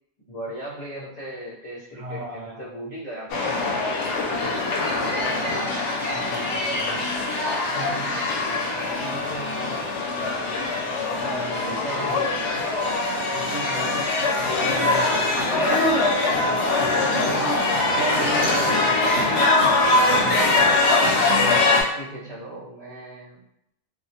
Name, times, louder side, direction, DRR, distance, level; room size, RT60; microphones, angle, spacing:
voice 1, 0.2-4.1 5.0-6.0 7.6-8.2 8.9-9.9 11.2-12.5 14.7-14.9 17.0-17.5 18.3-18.6 20.0-21.2 21.9-23.4, right 1 dB, 40° left, -11 dB, 0.7 m, -38 dB
voice 2, 1.9-2.7 4.0-4.1 4.8-5.6 6.1-7.0 11.3-12.0 13.3-14.0 14.3-16.1 16.8-17.6 17.9-18.9, right 3 dB, 65° right, -4 dB, 0.8 m, -34 dB
sound 1, 3.3-21.8, left 2 dB, 70° left, 0.8 m, -22 dB
2.3 x 2.1 x 2.7 m, 0.79 s
omnidirectional pair, 1.2 m